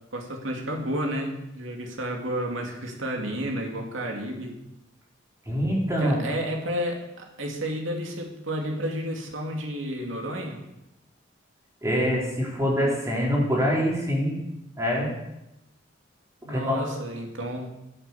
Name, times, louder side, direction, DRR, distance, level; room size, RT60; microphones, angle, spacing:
voice 1, 0.1-4.5 6.0-10.6 16.4-17.7, equal, 90° right, 1 dB, 2.5 m, -31 dB
voice 2, 5.5-6.2 11.8-14.4 14.8-15.1 16.5-16.9, equal, 15° right, -3 dB, 4.0 m, -25 dB
15.0 x 7.8 x 6.9 m, 0.92 s
head